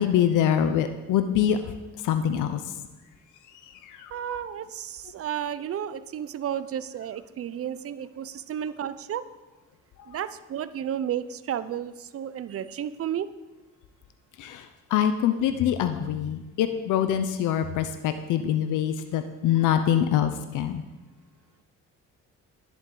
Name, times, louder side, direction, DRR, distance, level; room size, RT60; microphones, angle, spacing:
voice 1, 0.0-1.6 2.0-2.6 3.9-4.4 10.1-10.2 14.4-14.7 14.9-20.8, left 9 dB, 85° left, 9 dB, 0.7 m, -24 dB
voice 2, 4.1-9.3 10.1-13.3, right 9 dB, 50° right, 14 dB, 0.6 m, -32 dB
11.0 x 11.0 x 3.9 m, 1.1 s
cardioid pair, 90°, 30 cm